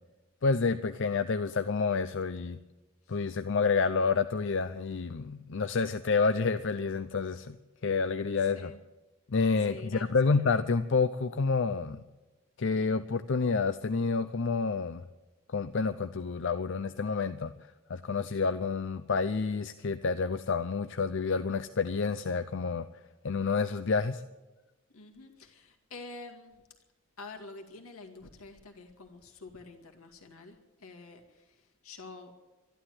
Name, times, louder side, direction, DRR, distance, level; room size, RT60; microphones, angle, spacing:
voice 1, 0.4-2.6 3.1-7.6 7.8-8.7 9.3-12.0 12.6-15.0 15.5-17.5 17.9-22.9 23.2-24.2, left 4 dB, 60° left, 11 dB, 0.5 m, -29 dB
voice 2, 8.4-8.8 9.6-10.4 24.9-26.6 27.2-32.4, left 3 dB, 85° left, 4 dB, 2.3 m, -48 dB
13.0 x 11.5 x 9.3 m, 1.1 s
head